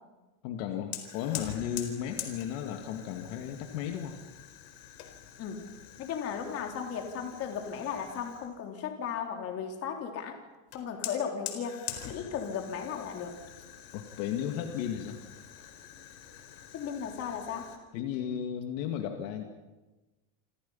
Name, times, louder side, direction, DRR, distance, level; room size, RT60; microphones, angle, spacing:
voice 1, 0.4-4.2 13.9-15.2 17.9-19.4, left 9 dB, 55° left, 4 dB, 2.5 m, -34 dB
Fire, 0.9-8.6 10.7-17.8, left 11 dB, 85° left, 4.5 m, -45 dB
voice 2, 6.0-10.4 10.7-13.4 16.7-17.7, left 7 dB, 30° left, 3 dB, 3.6 m, -36 dB
29.0 x 26.5 x 5.7 m, 1.1 s
cardioid pair, 175°, 46 cm